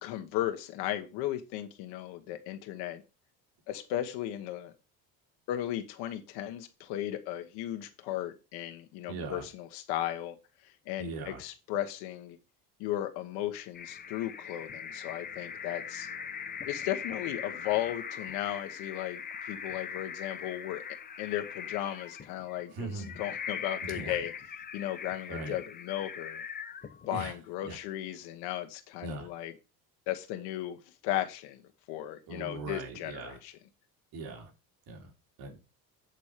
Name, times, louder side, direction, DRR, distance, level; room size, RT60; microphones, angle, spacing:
voice 1, 0.0-3.0 3.7-4.7 5.5-10.4 10.9-12.4 12.8-16.1 16.6-20.8 21.2-24.3 24.7-26.4 27.0-29.5 30.1-30.8 31.0-31.6 31.9-33.5, left 13 dB, 85° left, 1.2 m, -35 dB
voice 2, 9.1-9.5 11.0-11.4 22.7-23.2 23.8-24.2 25.3-25.6 27.1-27.3 27.6-27.8 29.0-29.3 32.3-33.4 34.1-34.5 34.9-35.1 35.4-35.7, right 3 dB, 65° right, 2.6 m, -40 dB
sound 1, 13.7-27.3, left 7 dB, 25° left, 0.7 m, -41 dB
8.1 x 4.3 x 6.6 m
cardioid pair, 130°, 38 cm